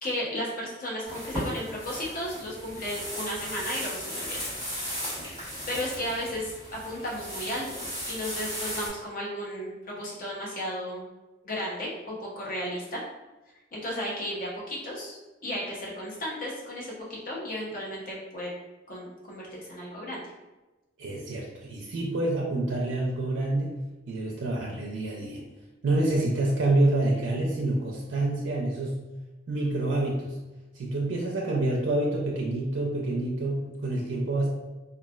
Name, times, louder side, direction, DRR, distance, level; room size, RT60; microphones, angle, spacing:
voice 1, 0.0-4.4 5.7-11.0 11.4-13.0 13.7-18.5 18.9-20.2, equal, 50° left, -4 dB, 0.8 m, -34 dB
sound 1, 1.0-8.9, equal, 25° left, 1.5 m, -36 dB
voice 2, 21.0-23.7 24.1-25.4 25.8-29.0 29.5-30.3 30.8-34.5, right 2 dB, 85° right, -2 dB, 0.5 m, -27 dB
3.1 x 2.3 x 2.3 m, 1.1 s
head